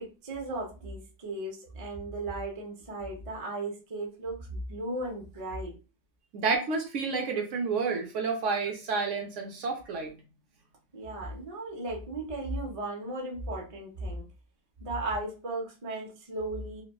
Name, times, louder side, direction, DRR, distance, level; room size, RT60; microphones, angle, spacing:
voice 1, 0.0-5.8 10.9-14.3 14.8-16.8, right 2 dB, 35° right, 0 dB, 0.6 m, -36 dB
voice 2, 6.3-10.1, right 4 dB, 70° right, 2 dB, 0.9 m, -30 dB
3.1 x 2.2 x 2.2 m, 0.32 s
omnidirectional pair, 1.4 m